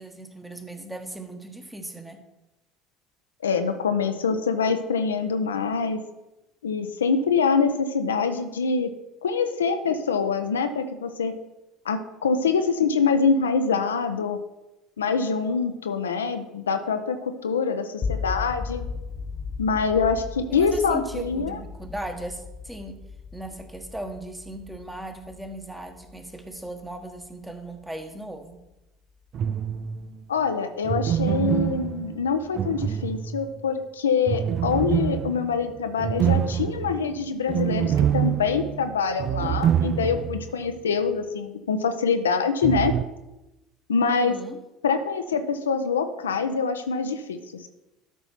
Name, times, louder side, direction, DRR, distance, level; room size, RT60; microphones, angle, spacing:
voice 1, 0.0-2.2 20.5-23.0 23.3-28.6 44.0-44.6, right 1 dB, 5° right, 6 dB, 1.4 m, -37 dB
voice 2, 3.4-6.0 6.6-8.9 9.2-11.3 11.8-14.4 15.0-18.8 19.6-21.6 30.3-42.9 43.9-44.4 44.8-47.7, left 5 dB, 80° left, 8 dB, 0.7 m, -25 dB
sound 1, 18.0-28.0, left 5 dB, 35° left, 1.1 m, -36 dB
sound 2, 29.3-30.1 30.8-33.6 34.3-40.5 40.8-40.9 42.6-43.0, right 9 dB, 45° right, 0.4 m, -26 dB
12.5 x 5.6 x 4.5 m, 0.97 s
figure-of-eight pair, 65°, 0 cm